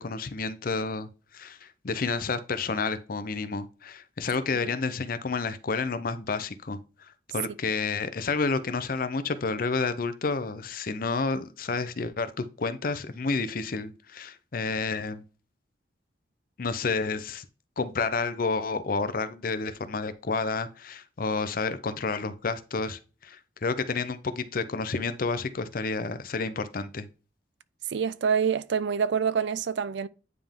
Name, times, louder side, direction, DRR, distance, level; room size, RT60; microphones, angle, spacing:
voice 1, 0.0-6.8 7.3-15.2 16.6-17.4 17.8-27.1, left 4 dB, 50° left, 0.6 m, -30 dB
voice 2, 27.9-30.1, right 6 dB, 70° right, 0.4 m, -26 dB
9.5 x 3.5 x 3.5 m
head